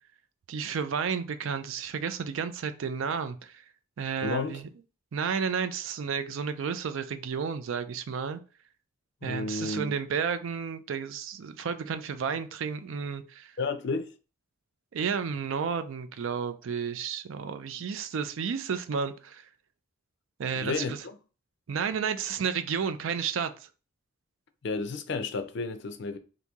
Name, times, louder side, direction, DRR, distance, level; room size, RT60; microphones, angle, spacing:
voice 1, 0.5-3.6 4.0-4.7 5.1-8.4 9.2-13.5 14.9-19.5 20.4-21.0 21.7-23.5, right 6 dB, 70° right, 0.4 m, -32 dB
voice 2, 4.2-4.6 9.2-9.9 13.6-14.1 20.6-21.2 24.6-26.2, left 3 dB, 55° left, 0.4 m, -32 dB
2.9 x 2.6 x 3.5 m
head